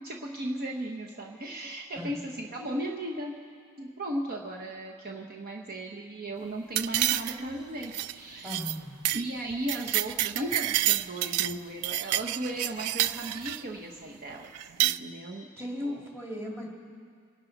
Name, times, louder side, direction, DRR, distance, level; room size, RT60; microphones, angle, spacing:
voice 1, 0.0-3.4 3.8-8.5 9.1-14.5 14.8-15.5 15.8-16.0, right 1 dB, 45° right, 0 dB, 1.0 m, -36 dB
sound 1, 6.8-7.5 7.8-8.1 8.5-8.8 9.1-9.2 9.5-11.6 11.8-13.6 14.6-15.0, right 14 dB, 75° right, 0.4 m, -28 dB
voice 2, 8.4-9.0 15.6-16.7, left 1 dB, 10° right, -1 dB, 2.4 m, -36 dB
28.0 x 12.0 x 4.0 m, 2.2 s
head